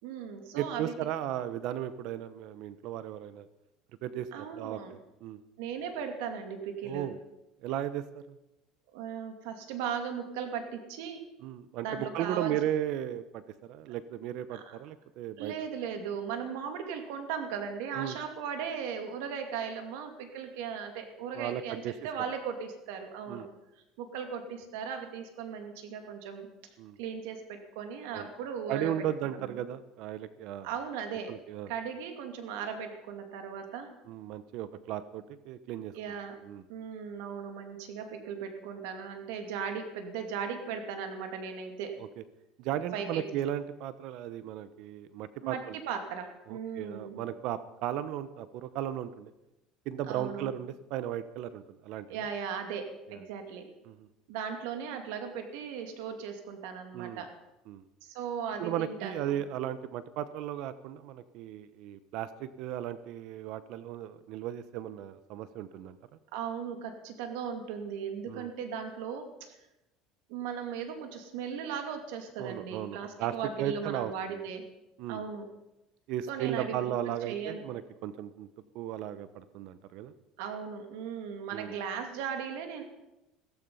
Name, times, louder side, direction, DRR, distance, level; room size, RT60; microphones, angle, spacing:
voice 1, 0.0-0.9 4.3-5.0 5.6-7.1 8.9-11.2 11.8-12.5 14.5-14.8 15.4-23.5 24.0-26.5 27.0-29.0 29.4-29.6 30.6-31.3 31.7-33.9 35.9-36.4 36.7-42.0 42.9-43.3 45.4-47.2 50.1-50.5 52.1-53.7 54.3-57.3 58.0-59.4 66.3-69.6 70.3-74.6 75.1-75.5 76.3-76.9 77.2-77.6 80.4-82.8, right 7 dB, 85° right, 6 dB, 2.5 m, -37 dB
voice 2, 0.5-3.5 4.0-5.4 6.8-7.2 7.6-8.2 11.4-15.5 17.9-18.2 21.3-21.9 23.3-23.5 26.8-27.0 28.1-28.3 28.7-30.7 31.3-31.7 34.1-35.9 36.4-36.6 42.0-42.1 42.6-45.8 46.5-49.3 49.9-52.2 53.1-53.2 53.9-54.1 56.9-57.2 57.7-57.8 58.6-66.0 68.3-68.5 72.4-74.1 75.0-75.2 76.1-78.5 78.7-80.1 81.5-81.8, right 11 dB, 60° right, 14 dB, 0.9 m, -36 dB
16.0 x 14.5 x 5.6 m, 0.92 s
cardioid pair, 140°, 0 cm